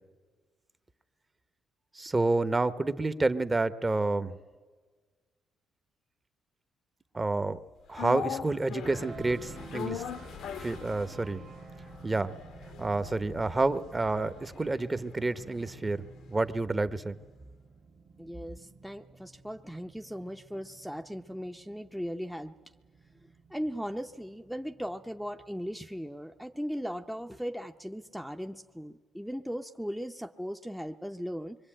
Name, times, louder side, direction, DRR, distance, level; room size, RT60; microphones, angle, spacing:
voice 1, 1.9-4.4 7.1-7.6 7.9-10.0 10.6-11.4 12.0-12.3 12.8-17.2, right 2 dB, 20° right, 12 dB, 1.0 m, -29 dB
sound 1, 7.9-16.2 16.5-16.6, left 9 dB, 75° left, 1.0 m, -42 dB
sound 2, 8.8-28.8, right 4 dB, 50° right, 1.8 m, -52 dB
voice 2, 18.2-22.6 23.5-31.6, equal, ahead, 4 dB, 0.7 m, -38 dB
25.0 x 22.5 x 8.9 m, 1.5 s
cardioid pair, 90°, 0 cm